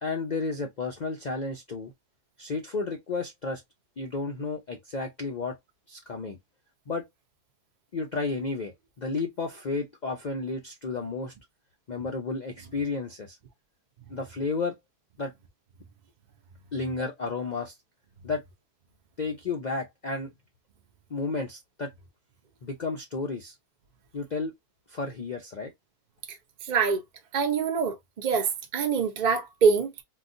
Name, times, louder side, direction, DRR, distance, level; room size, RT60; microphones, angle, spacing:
voice 1, 0.0-1.9 2.4-3.6 4.0-5.6 5.9-6.4 6.9-7.1 7.9-11.3 11.9-13.4 14.1-14.7 15.2-15.3 16.7-17.8 18.2-18.4 19.2-20.3 21.1-21.9 22.6-23.5 24.1-24.5 24.9-25.7, left 3 dB, 65° left, 0.4 m, -32 dB
voice 2, 26.3-27.0 27.3-30.0, right 6 dB, 50° right, 0.5 m, -25 dB
3.9 x 2.3 x 2.5 m
omnidirectional pair, 1.6 m